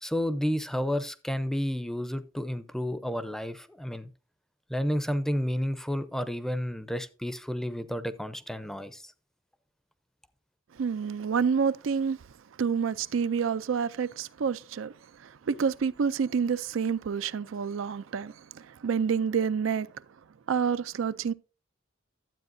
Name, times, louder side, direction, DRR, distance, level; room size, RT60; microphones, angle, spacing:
voice 1, 0.0-4.1 4.7-9.1, equal, ahead, 0.6 m, -31 dB
voice 2, 10.7-12.3 12.6-19.9 20.5-21.3, right 6 dB, 70° right, 0.4 m, -28 dB
12.0 x 8.4 x 2.6 m
head